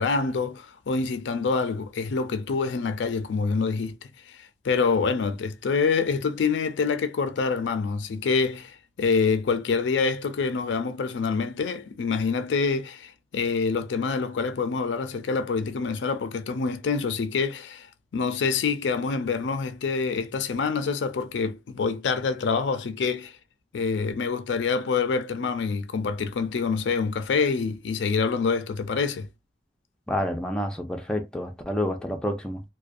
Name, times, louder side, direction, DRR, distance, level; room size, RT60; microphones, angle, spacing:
voice 1, 0.0-4.0 4.3-17.9 18.1-23.4 23.7-29.3, left 5 dB, 85° left, 0.4 m, -26 dB
voice 2, 30.1-32.6, left 1 dB, 5° left, 0.3 m, -29 dB
2.3 x 2.1 x 2.5 m
head